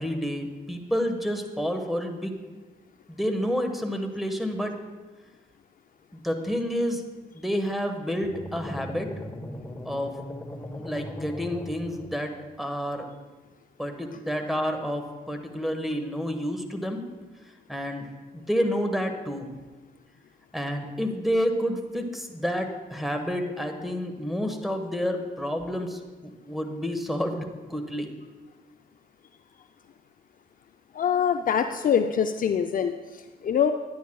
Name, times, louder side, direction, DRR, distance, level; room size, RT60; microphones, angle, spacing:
voice 1, 0.0-2.3 3.1-4.7 6.1-7.0 7.3-9.1 9.8-10.1 10.7-13.1 13.8-17.0 17.7-19.5 20.5-26.0 26.5-28.1, equal, ahead, 5 dB, 1.3 m, -29 dB
sound 1, 8.2-12.5, left 1 dB, 15° left, 1.0 m, -38 dB
voice 2, 30.9-32.9 33.4-33.7, left 8 dB, 50° left, 8 dB, 0.4 m, -23 dB
10.5 x 10.0 x 2.3 m, 1.3 s
supercardioid pair, 55°, 19 cm